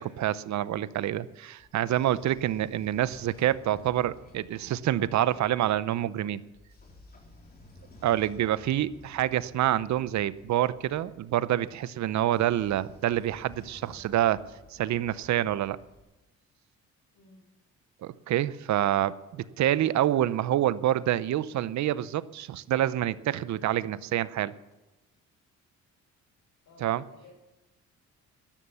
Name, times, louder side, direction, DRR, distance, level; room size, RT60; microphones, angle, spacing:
voice 1, 0.0-6.4 8.0-14.4 14.7-15.8 18.0-24.5 26.8-27.0, right 12 dB, 65° right, 17 dB, 0.7 m, -27 dB
Train / Sliding door, 1.6-5.6 6.5-11.3 12.1-16.0, left 2 dB, 30° left, 3.7 m, -54 dB
voice 2, 26.6-27.3, left 3 dB, 80° left, -3 dB, 4.5 m, -55 dB
13.0 x 11.5 x 6.9 m, 1.1 s
cardioid pair, 90°, 30 cm